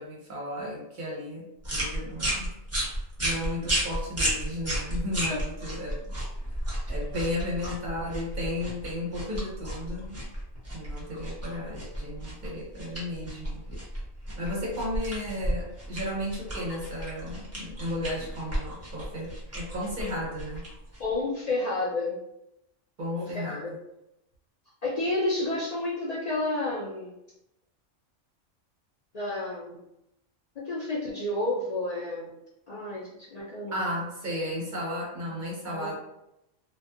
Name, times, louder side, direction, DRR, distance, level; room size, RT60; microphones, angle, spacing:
voice 1, 0.0-2.5 3.2-6.1 6.9-10.2 10.7-13.6 14.4-20.6 23.0-23.8 33.7-35.9, left 1 dB, 45° right, -4 dB, 0.8 m, -34 dB
sound 1, 1.6-21.2, right 1 dB, 15° right, 0.5 m, -33 dB
voice 2, 21.0-22.2 23.1-23.7 24.8-27.1 29.1-29.8 30.6-32.3 32.7-33.9 35.7-35.9, left 2 dB, 65° left, -6 dB, 0.4 m, -30 dB
2.6 x 2.2 x 2.4 m, 0.84 s
omnidirectional pair, 1.2 m